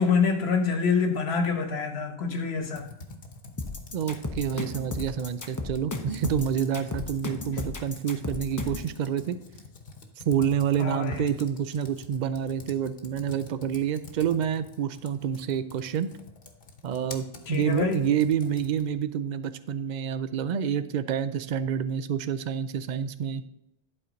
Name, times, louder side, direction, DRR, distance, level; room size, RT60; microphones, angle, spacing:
voice 1, 0.0-2.9 10.8-11.3 17.5-18.0, left 5 dB, 90° left, 5 dB, 1.3 m, -26 dB
Computer keyboard, 2.6-19.0, left 3 dB, 60° left, 1.2 m, -46 dB
sound 1, 3.6-8.9, left 3 dB, 20° left, 0.7 m, -34 dB
voice 2, 3.9-9.4 10.3-16.1 16.8-23.4, right 8 dB, 55° right, 13 dB, 0.6 m, -28 dB
11.0 x 4.4 x 5.1 m, 0.85 s
omnidirectional pair, 1.0 m